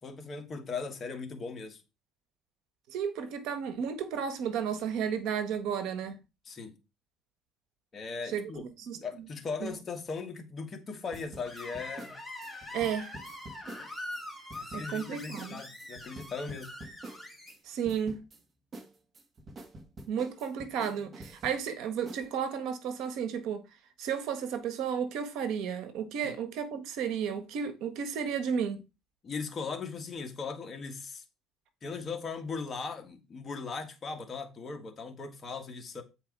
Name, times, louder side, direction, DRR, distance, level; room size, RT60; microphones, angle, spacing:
voice 1, 0.0-1.8 6.4-6.8 7.9-8.6 9.0-12.1 14.5-16.7 26.2-26.3 29.2-31.2 31.8-36.0, left 4 dB, 30° left, 1.6 m, -38 dB
voice 2, 2.9-6.2 8.3-8.4 8.9-9.3 9.6-9.8 12.7-13.1 14.7-15.6 17.6-18.2 20.1-23.6 24.0-28.8, right 7 dB, 70° right, 1.4 m, -33 dB
sound 1, 11.1-14.2 14.5-15.1 15.4-15.5 15.8-17.6 17.9-18.4 18.7-21.7 22.1-22.2, right 2 dB, 30° right, 1.4 m, -46 dB
Screech, 11.4-17.5, left 1 dB, ahead, 2.1 m, -43 dB
8.8 x 4.7 x 4.7 m
cardioid pair, 145°, 0 cm